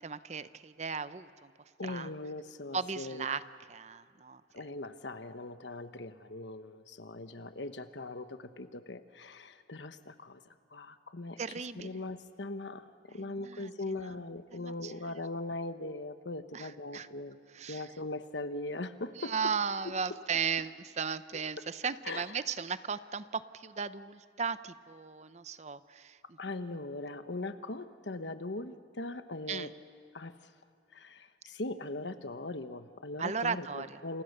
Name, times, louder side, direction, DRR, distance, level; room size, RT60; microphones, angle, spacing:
voice 1, 0.0-1.5 1.8-2.1 2.7-3.4 3.7-4.7 11.4-11.9 13.1-13.7 14.5-14.9 16.5-17.1 17.5-17.9 19.1-26.4 29.5-29.7 33.2-34.0, right 6 dB, 40° right, 13 dB, 0.7 m, -36 dB
voice 2, 1.8-3.3 4.5-10.4 10.7-17.4 17.7-19.5 19.8-20.2 21.6-22.4 26.4-29.7 30.1-30.3 30.9-34.2, left 2 dB, 85° left, 10 dB, 1.2 m, -40 dB
29.0 x 28.5 x 6.8 m, 2.2 s
head